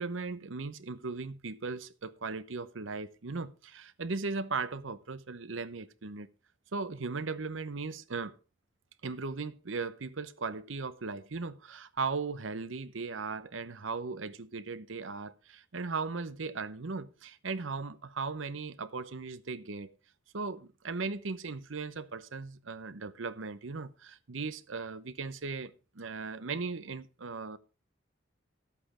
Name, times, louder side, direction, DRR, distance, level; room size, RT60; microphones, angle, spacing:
voice 1, 0.0-6.3 6.7-8.4 9.0-19.9 20.3-27.6, right 4 dB, 85° right, 0.8 m, -37 dB
12.5 x 8.5 x 4.9 m
head